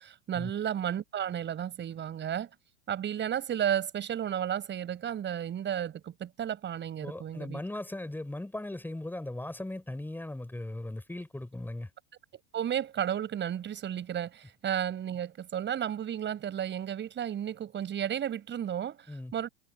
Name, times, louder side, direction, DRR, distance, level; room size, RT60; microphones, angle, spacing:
voice 1, 0.0-2.5 2.9-7.6 12.3-19.5, right 10 dB, 35° right, 7.6 m, -33 dB
voice 2, 7.0-11.9 19.1-19.3, left 1 dB, 5° left, 5.7 m, -38 dB
hypercardioid pair, 90°, 33 cm